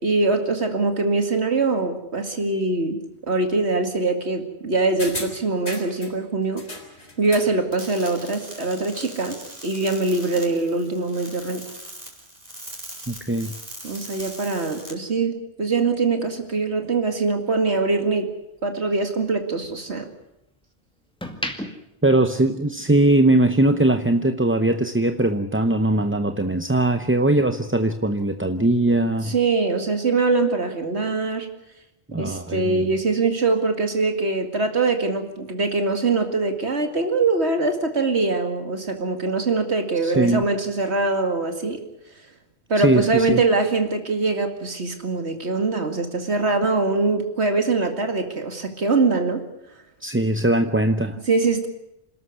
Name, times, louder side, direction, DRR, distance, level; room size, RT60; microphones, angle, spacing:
voice 1, 0.0-3.0 3.3-6.6 7.2-9.4 9.6-11.6 13.8-18.3 18.6-20.1 29.3-31.5 32.2-41.8 42.7-49.4 51.3-51.7, right 3 dB, 75° right, 6 dB, 2.5 m, -23 dB
sound 1, 5.0-6.1 6.6-7.6 7.9-8.0, left 1 dB, 70° left, 4.1 m, -35 dB
sound 2, 7.7-14.9, right 1 dB, 35° right, 4.7 m, -40 dB
voice 2, 13.1-13.6 22.0-29.3 32.1-32.9 40.0-40.4 42.8-43.4 50.0-51.2, right 2 dB, 15° right, 8 dB, 0.6 m, -20 dB
sound 3, 16.4-18.7 19.1-20.5 21.0-23.1 23.4-23.7, equal, 5° left, 2.2 m, -37 dB
27.5 x 13.0 x 9.6 m, 0.86 s
omnidirectional pair, 1.1 m